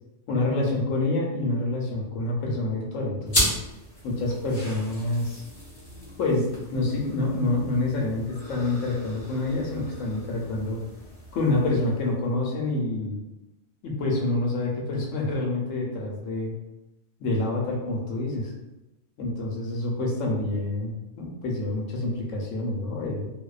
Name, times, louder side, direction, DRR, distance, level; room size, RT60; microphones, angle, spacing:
voice 1, 0.3-3.6 4.0-5.4 6.2-10.8 11.3-13.2 13.8-16.5 17.2-18.5 19.2-23.3, left 2 dB, 90° left, -1 dB, 1.0 m, -27 dB
sound 1, 3.3-12.2, equal, 25° left, 0.7 m, -35 dB
2.6 x 2.1 x 2.3 m, 0.96 s
omnidirectional pair, 1.3 m